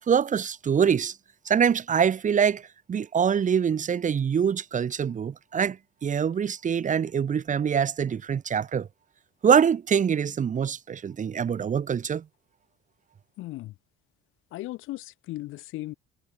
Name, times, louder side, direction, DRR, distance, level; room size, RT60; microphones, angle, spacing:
voice 1, 0.1-1.1 1.4-2.6 2.9-5.8 6.0-8.9 9.4-12.2, right 7 dB, 35° right, 1.6 m, -24 dB
voice 2, 13.4-13.8 14.5-15.9, left 17 dB, 75° left, 3.5 m, -37 dB
cardioid pair, 100°, 21 cm